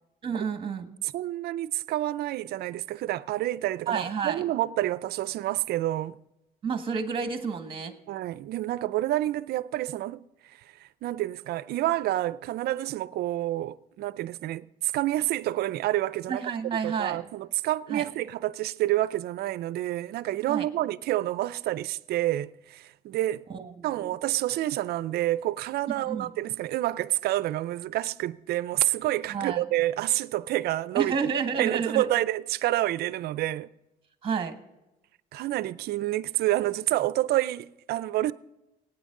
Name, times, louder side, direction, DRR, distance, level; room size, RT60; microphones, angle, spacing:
voice 1, 0.2-0.9 3.9-4.4 6.6-7.9 16.3-17.2 17.9-18.0 20.5-20.7 23.5-24.1 25.9-26.3 29.3-29.6 30.9-32.1 34.2-34.5, right 6 dB, 30° right, 1.6 m, -30 dB
voice 2, 1.1-6.2 8.1-10.3 11.0-16.5 16.8-23.5 23.8-31.1 31.6-33.7 35.3-38.3, right 15 dB, 70° right, 0.5 m, -28 dB
18.5 x 9.2 x 3.7 m
cardioid pair, 110°, 17 cm